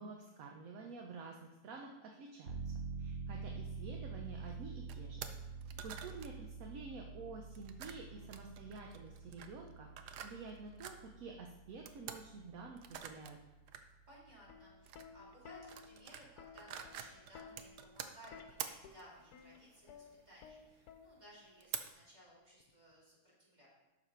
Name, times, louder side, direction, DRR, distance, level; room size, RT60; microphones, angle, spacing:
voice 1, 0.0-2.7 3.0-5.3 5.8-13.4, right 4 dB, 65° right, 1 dB, 1.1 m, -50 dB
sound 1, 2.5-15.0 15.3-15.4, right 4 dB, 45° right, 0.9 m, -48 dB
sound 2, 4.4-4.6 4.9-5.0 5.2-5.4 5.6-6.3 7.5-11.0 11.9-12.2 12.8-13.3 13.7-13.8 14.8-15.1 15.5-16.3 16.6-20.2 20.9-21.0 21.3-21.9, right 9 dB, 90° right, 1.2 m, -47 dB
voice 2, 5.5-5.9 14.1-23.7, equal, 25° right, -8 dB, 3.3 m, -60 dB
Plucked string instrument, 14.3-21.5 22.6-22.9, left 6 dB, 75° left, 1.1 m, -56 dB
11.5 x 4.1 x 4.4 m, 1.0 s
omnidirectional pair, 1.7 m